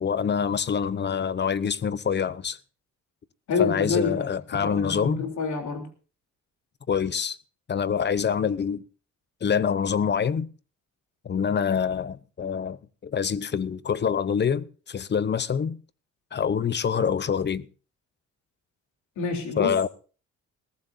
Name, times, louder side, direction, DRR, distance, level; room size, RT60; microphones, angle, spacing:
voice 1, 0.0-2.6 3.6-5.3 6.9-7.4 7.7-8.8 9.4-10.5 11.2-12.8 13.0-15.8 16.3-17.7 19.6-19.9, left 7 dB, 35° left, 0.7 m, -26 dB
voice 2, 3.5-4.2 4.5-5.9 19.2-19.7, left 5 dB, 70° left, 3.5 m, -27 dB
21.0 x 15.0 x 2.6 m
cardioid pair, 90°, 30 cm